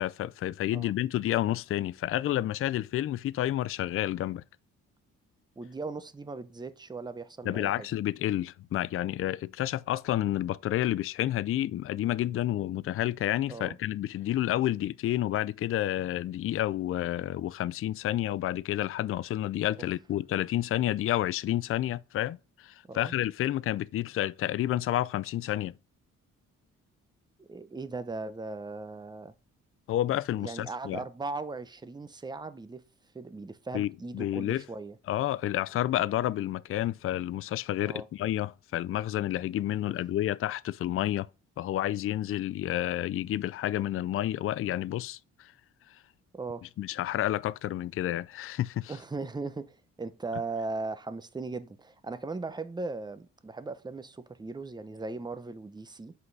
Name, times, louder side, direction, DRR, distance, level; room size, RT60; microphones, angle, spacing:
voice 1, 0.0-4.4 7.4-25.8 29.9-31.0 33.7-34.6 35.1-41.3 41.6-45.5 46.8-48.9, left 13 dB, 45° left, 0.4 m, -30 dB
voice 2, 5.6-7.9 13.5-13.8 22.9-23.1 27.4-29.3 30.4-32.8 33.1-35.0 37.8-38.1 39.8-39.9 46.3-46.7 48.9-56.1, right 3 dB, 15° right, 0.7 m, -38 dB
8.0 x 5.5 x 4.1 m
cardioid pair, 90°, 30 cm